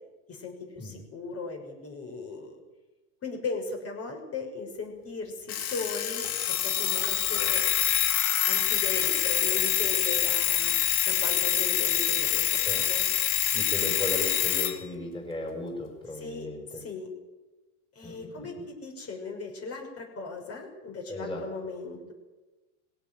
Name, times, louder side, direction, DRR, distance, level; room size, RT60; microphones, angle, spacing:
voice 1, 0.3-2.5 3.2-7.6 8.5-10.8 11.1-12.5 12.9-13.1 16.2-16.5 16.7-17.1 17.9-22.1, left 3 dB, 30° left, 2 dB, 6.0 m, -37 dB
Alarm, 5.5-14.8, left 12 dB, 70° left, 3.5 m, -26 dB
voice 2, 13.5-16.8 18.0-18.5 21.1-21.4, left 2 dB, 10° left, 1 dB, 6.0 m, -36 dB
20.5 x 17.0 x 9.3 m, 1.1 s
hypercardioid pair, 115°, 46 cm